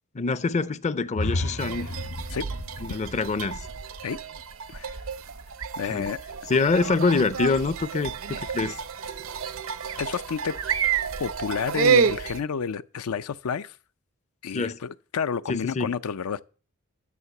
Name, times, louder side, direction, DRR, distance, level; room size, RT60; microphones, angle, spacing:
voice 1, 0.1-1.9 2.8-3.7 5.8-6.1 6.5-8.8 14.5-14.8 15.5-15.9, left 4 dB, 30° left, 0.5 m, -25 dB
sound 1, 1.1-5.0, left 1 dB, 55° left, 0.8 m, -34 dB
sound 2, 1.6-12.4, right 6 dB, 70° right, 0.7 m, -29 dB
voice 2, 5.8-6.2 10.0-10.5 11.2-13.8 14.4-16.4, left 6 dB, 85° left, 0.5 m, -30 dB
11.0 x 6.5 x 6.9 m
head